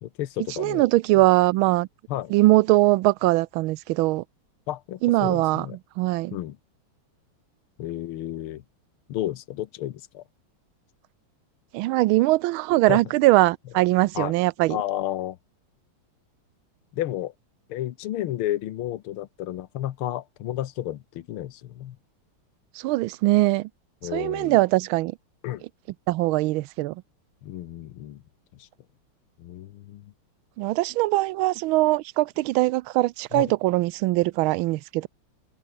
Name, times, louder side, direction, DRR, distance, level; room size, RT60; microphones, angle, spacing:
voice 1, 0.0-0.9 1.1-1.2 2.1-2.3 4.7-5.8 6.3-6.6 7.8-8.6 9.1-10.2 12.9-13.0 14.2-14.4 14.7-15.4 16.9-17.3 17.7-22.0 24.0-24.6 25.4-25.6 27.4-28.2 28.6-28.7 29.4-30.1 33.3-33.5, left 13 dB, 75° left, 1.8 m, -32 dB
voice 2, 0.6-1.9 2.3-4.2 5.0-5.7 6.0-6.4 11.7-14.8 22.8-23.7 24.1-25.1 26.1-26.9 30.6-35.1, right 18 dB, 75° right, 1.3 m, -21 dB
omnidirectional pair, 2.4 m